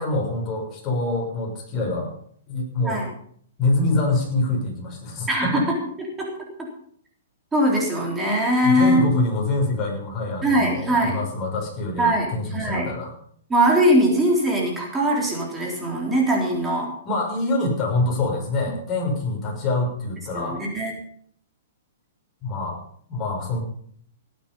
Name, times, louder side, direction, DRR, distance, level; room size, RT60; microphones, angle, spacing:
voice 1, 0.0-2.1 2.5-3.0 3.6-5.5 8.6-13.1 17.0-20.6 22.4-22.8 23.1-23.6, left 2 dB, 25° left, -1 dB, 6.2 m, -25 dB
voice 2, 5.3-6.3 6.6-6.7 7.5-9.0 10.4-11.2 12.0-12.9 13.5-16.9 18.7-18.8 20.4-20.9, right 1 dB, 10° right, -2 dB, 3.6 m, -21 dB
18.0 x 9.6 x 5.5 m, 0.62 s
hypercardioid pair, 145°, 0 cm